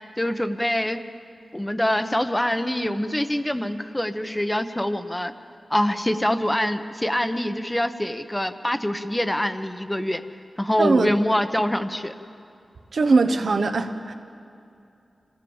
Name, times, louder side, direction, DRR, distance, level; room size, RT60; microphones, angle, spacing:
voice 1, 0.2-1.0 1.5-5.3 5.7-10.2 10.6-12.1, left 1 dB, 10° left, 9 dB, 1.0 m, -25 dB
voice 2, 10.8-11.1 12.9-14.1, right 3 dB, 75° right, 8 dB, 1.2 m, -20 dB
26.0 x 17.0 x 7.2 m, 2.6 s
wide cardioid pair, 90°, 0 cm